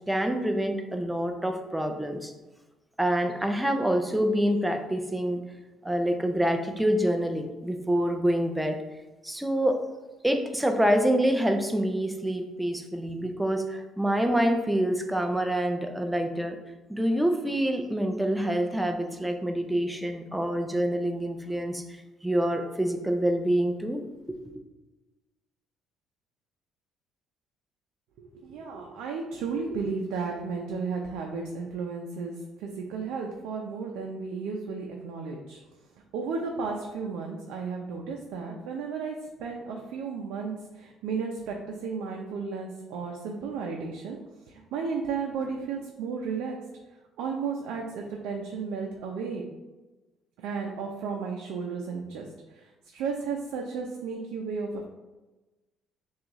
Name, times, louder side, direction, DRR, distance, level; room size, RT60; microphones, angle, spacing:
voice 1, 0.0-2.3 3.0-5.4 5.8-8.8 9.2-9.8 10.2-16.6 16.9-21.8 22.2-24.4, equal, 5° right, 5 dB, 0.4 m, -26 dB
voice 2, 28.2-35.6 36.1-44.2 44.5-46.6 47.2-49.4 50.4-54.8, right 5 dB, 90° right, 0 dB, 0.5 m, -34 dB
6.1 x 2.4 x 3.0 m, 1.1 s
cardioid pair, 140°, 0 cm